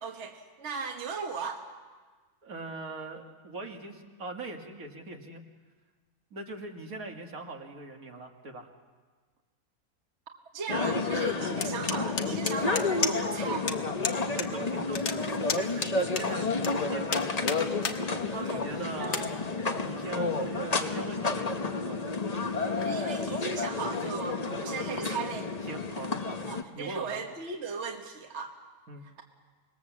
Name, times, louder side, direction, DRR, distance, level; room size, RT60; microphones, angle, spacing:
voice 1, 0.0-1.6 10.3-13.7 18.3-18.7 19.0-19.3 22.8-25.5 26.5-28.5, right 5 dB, 50° right, 3 dB, 1.6 m, -37 dB
voice 2, 2.4-5.4 6.3-8.7 14.3-15.2 15.5-15.9 16.2-17.7 18.5-19.2 19.8-22.1 25.6-26.5 26.7-27.2 28.9-29.0, right 2 dB, 70° right, 2 dB, 2.3 m, -41 dB
sound 1, 10.7-26.6, left 3 dB, 30° left, 0.9 m, -31 dB
sound 2, 11.6-13.4 13.7-13.8 14.0-14.5 14.7-16.7 17.1-18.0 18.4-18.5 19.0-19.3, left 5 dB, 65° left, 1.7 m, -31 dB
26.0 x 20.0 x 7.4 m, 1.4 s
omnidirectional pair, 1.5 m